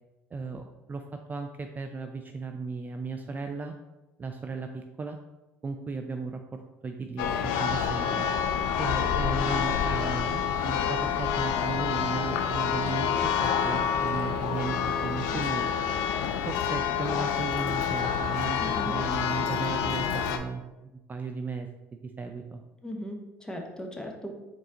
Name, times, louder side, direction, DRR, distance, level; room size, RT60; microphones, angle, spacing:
voice 1, 0.3-3.7 4.2-5.2 5.6-6.4 6.8-8.3 8.8-15.6 16.5-18.6 18.8-21.7 22.2-22.6, right 4 dB, 25° right, 5 dB, 0.3 m, -36 dB
Church bell, 7.2-20.4, left 7 dB, 70° left, 0.3 m, -28 dB
voice 2, 18.6-18.9 22.8-24.3, equal, 10° left, 2 dB, 0.8 m, -38 dB
4.0 x 2.7 x 3.7 m, 1.0 s
hypercardioid pair, 65°, 7 cm